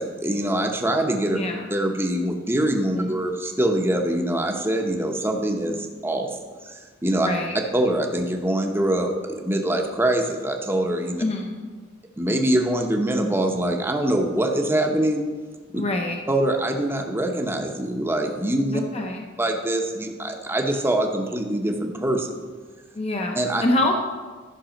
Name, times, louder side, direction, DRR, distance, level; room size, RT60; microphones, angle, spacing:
voice 1, 0.0-1.4 1.7-6.3 6.6-7.3 7.7-11.2 12.2-15.2 15.7-15.8 16.3-18.8 19.4-22.3 23.3-23.6, right 1 dB, 10° right, 2 dB, 0.9 m, -24 dB
voice 2, 1.3-1.6 3.0-3.1 7.2-7.5 11.2-11.7 15.7-16.2 18.7-19.3 22.9-24.0, left 2 dB, 30° left, 2 dB, 0.7 m, -26 dB
12.0 x 6.1 x 5.2 m, 1.4 s
head